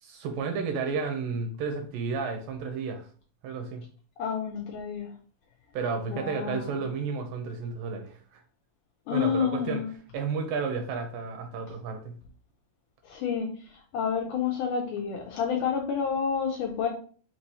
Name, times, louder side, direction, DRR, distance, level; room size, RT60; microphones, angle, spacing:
voice 1, 0.0-3.1 3.4-3.9 5.7-8.4 9.1-9.8 10.1-12.2, right 5 dB, 80° right, 5 dB, 2.2 m, -32 dB
voice 2, 4.2-5.1 6.1-6.8 9.1-9.9 13.0-16.9, left 7 dB, 85° left, 0 dB, 1.9 m, -29 dB
6.1 x 3.0 x 2.7 m, 0.42 s
omnidirectional pair, 4.2 m